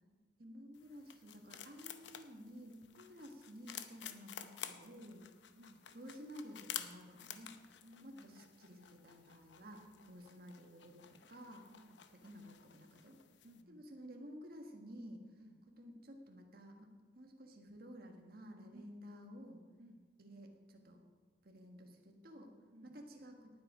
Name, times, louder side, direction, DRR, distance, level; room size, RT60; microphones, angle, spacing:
voice 1, 0.4-5.2 5.9-7.6 8.0-9.8 10.1-11.7 12.1-13.2 13.7-15.2 15.8-19.6 20.2-21.0 21.4-22.5 22.8-23.5, equal, 50° right, 3 dB, 1.6 m, -53 dB
sound 1, 0.7-13.6, left 9 dB, 75° left, 0.7 m, -52 dB
voice 2, 5.5-5.9 7.8-8.4 9.6-10.3 11.7-12.1 13.4-13.8 15.4-15.7 18.7-18.9 19.8-20.1 22.7-23.0, right 1 dB, 80° right, 3 dB, 1.1 m, -60 dB
18.0 x 7.8 x 5.0 m, 1.5 s
head